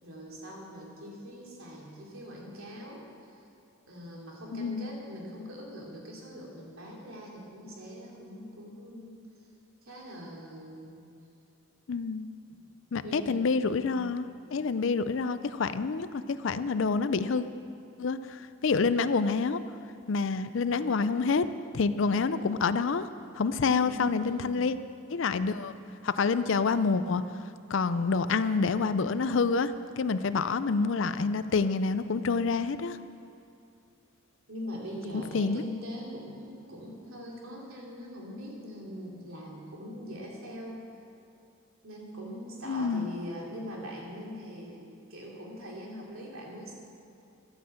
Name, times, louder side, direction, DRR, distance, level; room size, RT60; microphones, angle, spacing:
voice 1, 0.0-3.4 3.9-9.2 9.8-11.1 12.5-12.6 13.0-14.2 23.7-24.7 34.5-40.8 41.8-44.8 45.1-46.8, equal, 70° right, -2 dB, 2.8 m, -42 dB
voice 2, 4.5-4.9 11.9-12.3 12.9-17.4 18.0-19.6 20.1-21.5 21.7-23.1 23.3-24.8 25.1-27.2 27.7-33.0 35.3-35.6 42.7-43.1, left 4 dB, 60° left, 13 dB, 0.4 m, -27 dB
12.0 x 9.4 x 7.7 m, 2.6 s
head